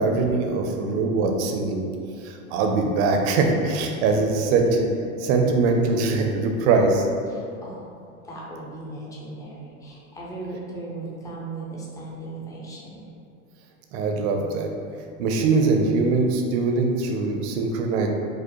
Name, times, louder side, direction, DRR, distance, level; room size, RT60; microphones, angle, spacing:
voice 1, 0.0-1.8 2.2-4.9 5.2-7.1 13.9-14.7 15.2-18.1, right 3 dB, 50° right, 3 dB, 0.6 m, -22 dB
voice 2, 7.3-7.9 8.2-13.1, right 2 dB, 10° left, -4 dB, 0.3 m, -37 dB
5.0 x 2.0 x 3.0 m, 2.4 s
hypercardioid pair, 115°, 43 cm